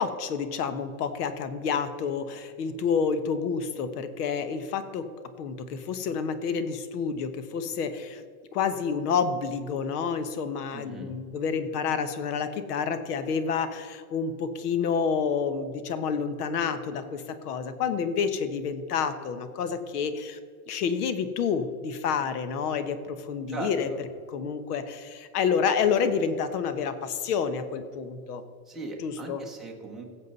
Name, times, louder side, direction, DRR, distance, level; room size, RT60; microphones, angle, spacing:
voice 1, 0.0-5.1 5.4-8.2 8.5-20.4 20.7-23.9 24.3-28.4 29.0-29.4, left 6 dB, 85° left, 11 dB, 1.2 m, -29 dB
voice 2, 10.7-11.1 23.5-24.0 28.7-30.0, right 2 dB, ahead, -2 dB, 0.5 m, -38 dB
16.5 x 7.6 x 4.1 m, 2.2 s
supercardioid pair, 175°, 45 cm